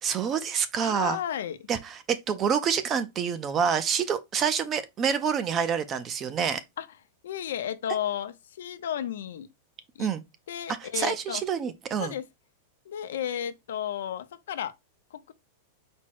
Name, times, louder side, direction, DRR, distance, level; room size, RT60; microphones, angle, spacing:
voice 1, 0.0-1.2 1.7-6.6 10.0-10.2 10.8-12.1, right 7 dB, 20° right, 0.4 m, -27 dB
voice 2, 0.8-1.6 6.8-6.9 7.2-9.5 10.0-10.1 10.5-11.4 12.0-12.3 12.9-14.7 15.1-15.3, left 10 dB, 85° left, 0.6 m, -33 dB
4.3 x 2.0 x 4.6 m
supercardioid pair, 170°, 0 cm